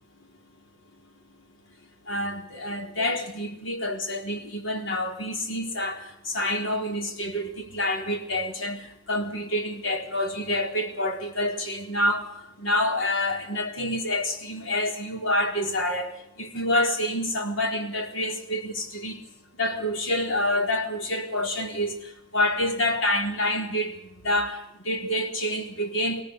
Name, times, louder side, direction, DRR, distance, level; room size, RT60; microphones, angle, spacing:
voice 1, 2.1-19.2 19.6-26.2, left 1 dB, 80° left, 3 dB, 4.3 m, -27 dB
26.0 x 17.0 x 6.9 m, 0.79 s
head